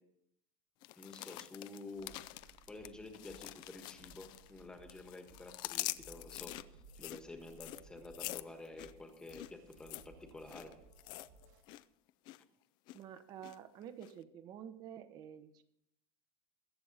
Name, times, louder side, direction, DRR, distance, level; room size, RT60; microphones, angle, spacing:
sound 1, 0.8-4.6 4.9-11.8 12.1-12.4 12.9-13.6 14.0-14.1, left 17 dB, 35° left, 0.4 m, -46 dB
voice 1, 1.0-2.1 2.7-6.5 7.0-10.7, left 2 dB, 5° left, 5 dB, 1.4 m, -50 dB
sound 2, 1.9-11.6, right 3 dB, 60° right, 2.3 m, -62 dB
voice 2, 12.9-15.6, right 9 dB, 30° right, 11 dB, 1.0 m, -49 dB
21.5 x 7.8 x 4.1 m, 0.74 s
supercardioid pair, 175°, 13 cm